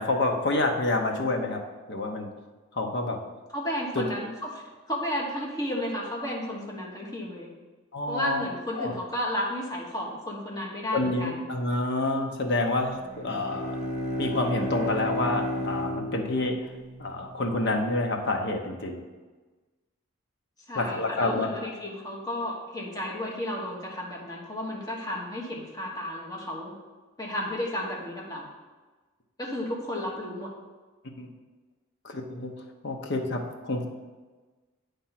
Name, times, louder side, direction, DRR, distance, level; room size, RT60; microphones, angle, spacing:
voice 1, 0.0-1.6 1.9-2.3 2.7-3.2 3.9-4.0 7.9-8.4 8.8-8.9 10.9-13.8 14.2-16.6 17.0-19.0 20.7-21.5 31.2-31.3 32.0-32.5 32.8-33.9, left 2 dB, 55° left, 3 dB, 0.9 m, -28 dB
voice 2, 3.5-4.6 4.9-7.5 8.1-11.4 20.7-26.7 27.2-28.5 29.4-30.5, left 1 dB, 20° left, -3 dB, 1.3 m, -33 dB
Bowed string instrument, 13.0-17.6, left 1 dB, 35° right, 0.8 m, -33 dB
8.4 x 3.5 x 5.8 m, 1.3 s
head